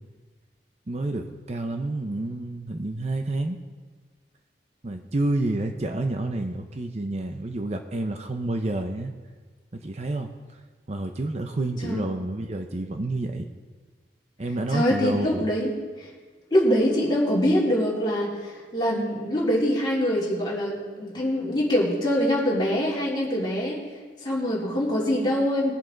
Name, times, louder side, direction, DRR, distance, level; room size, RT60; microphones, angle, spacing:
voice 1, 0.9-3.6 4.8-9.1 9.7-10.3 10.9-13.5 14.4-15.4, right 2 dB, 40° right, 5 dB, 0.7 m, -29 dB
voice 2, 11.6-12.1 14.7-16.1 16.5-23.8 24.2-25.7, equal, 25° left, -6 dB, 3.4 m, -24 dB
21.0 x 7.8 x 3.9 m, 1.4 s
head